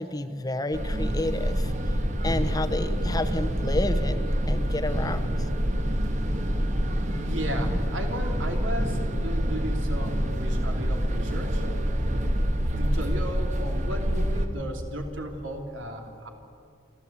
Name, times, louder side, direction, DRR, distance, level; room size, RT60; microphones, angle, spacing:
voice 1, 0.0-1.7 2.2-5.3 7.6-7.8, left 1 dB, 20° left, 11 dB, 0.9 m, -30 dB
sound 1, 0.7-14.5, equal, 40° right, 1.6 m, -26 dB
voice 2, 7.2-11.6 12.8-16.3, equal, 90° right, 3 dB, 3.0 m, -35 dB
27.5 x 13.0 x 8.6 m, 2.5 s
head